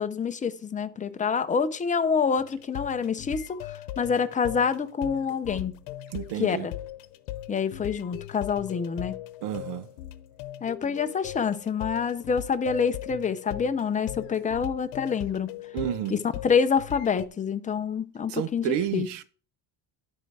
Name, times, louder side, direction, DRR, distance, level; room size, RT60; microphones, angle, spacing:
voice 1, 0.0-5.7 6.4-6.7 7.5-9.2 10.6-15.5 16.1-19.1, left 6 dB, 15° left, 0.6 m, -27 dB
sound 1, 2.4-17.3, left 13 dB, 85° left, 0.9 m, -39 dB
voice 2, 6.1-6.7 9.4-9.9 15.7-16.2 18.3-19.3, right 11 dB, 65° right, 0.8 m, -30 dB
11.5 x 4.7 x 4.7 m
cardioid pair, 130°, 45 cm